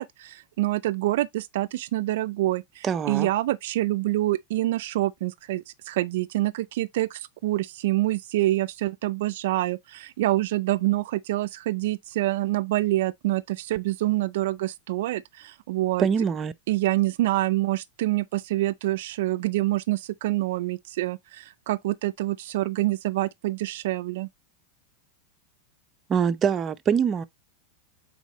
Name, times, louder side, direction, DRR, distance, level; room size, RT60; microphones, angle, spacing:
voice 1, 0.0-16.1 16.7-24.3, right 16 dB, 70° right, 0.4 m, -26 dB
voice 2, 2.8-3.3 16.0-16.5 26.1-27.2, right 7 dB, 25° right, 0.6 m, -24 dB
8.3 x 4.2 x 2.9 m
supercardioid pair, 125°, 0 cm